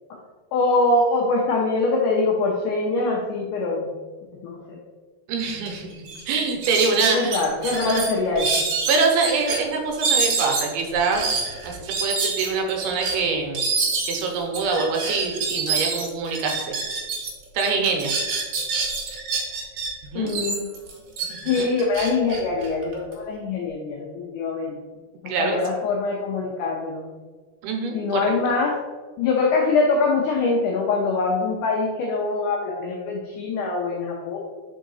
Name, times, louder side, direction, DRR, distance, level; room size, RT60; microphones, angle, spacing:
voice 1, 0.5-3.9 4.4-4.8 7.1-8.5 20.2-20.7 21.5-24.8 25.2-27.0 27.9-28.8 29.2-34.4, left 3 dB, 85° left, -2 dB, 1.8 m, -23 dB
voice 2, 5.3-5.9 6.3-7.4 7.8-8.1 8.9-11.2 11.6-13.7 14.1-16.8 17.5-18.1 20.0-20.3 21.3-21.7 25.3-25.6 27.6-28.1, right 4 dB, 85° right, 2 dB, 2.7 m, -24 dB
sound 1, 5.7-5.8 6.0-6.2 6.6-9.6 10.0-17.3 17.6-19.9 20.3-23.1, right 4 dB, 65° right, 1.8 m, -26 dB
5.0 x 4.6 x 4.0 m, 1.3 s
omnidirectional pair, 4.5 m